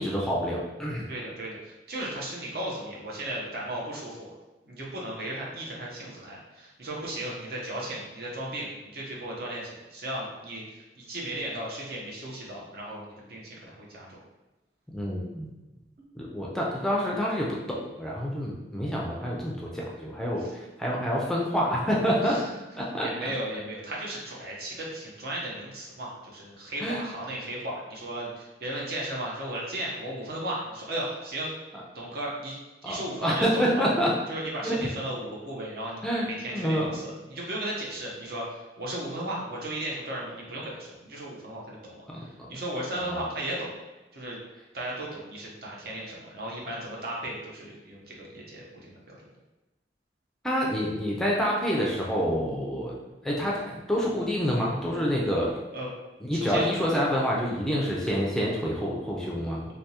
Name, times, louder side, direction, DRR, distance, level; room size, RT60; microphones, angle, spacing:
voice 1, 0.0-1.1 14.9-15.5 16.1-22.4 22.8-23.1 26.8-27.0 32.8-34.1 34.6-34.9 36.0-37.0 42.1-42.3 43.1-43.2 50.4-52.9 53.2-55.6 56.3-59.6, equal, 5° left, -4 dB, 0.4 m, -27 dB
voice 2, 1.1-4.3 4.6-14.2 20.4-20.5 22.2-22.4 23.0-31.5 31.9-32.6 32.8-33.8 34.3-43.8 44.1-44.4 44.7-49.2 53.1-53.2 55.7-55.9 56.3-56.7, right 1 dB, 60° right, -4 dB, 0.8 m, -35 dB
3.4 x 2.7 x 2.8 m, 1.1 s
head